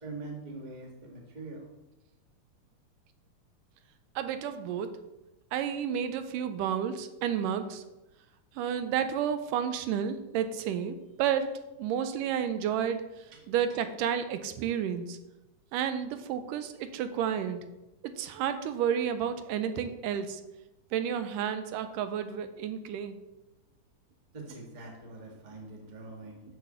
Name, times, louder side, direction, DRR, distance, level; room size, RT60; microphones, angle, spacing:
voice 1, 0.0-1.7 24.3-26.4, right 3 dB, 25° right, -1 dB, 1.0 m, -43 dB
voice 2, 4.2-5.0 5.5-7.8 8.6-11.5 11.8-13.1 13.5-15.2 15.7-17.6 18.0-20.4 20.9-23.2, right 8 dB, 80° right, 9 dB, 2.2 m, -31 dB
6.5 x 6.4 x 6.8 m, 0.99 s
omnidirectional pair, 3.8 m